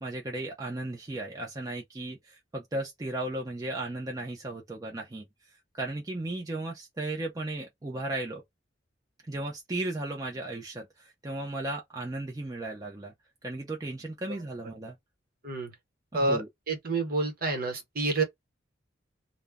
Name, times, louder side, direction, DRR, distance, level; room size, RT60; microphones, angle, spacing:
voice 1, 0.0-5.3 5.7-8.4 9.3-13.1 13.4-15.0 16.1-16.5, right 2 dB, 20° right, 0.4 m, -35 dB
voice 2, 15.4-15.7 16.1-18.2, right 2 dB, 50° right, 0.9 m, -29 dB
2.1 x 2.0 x 3.3 m
head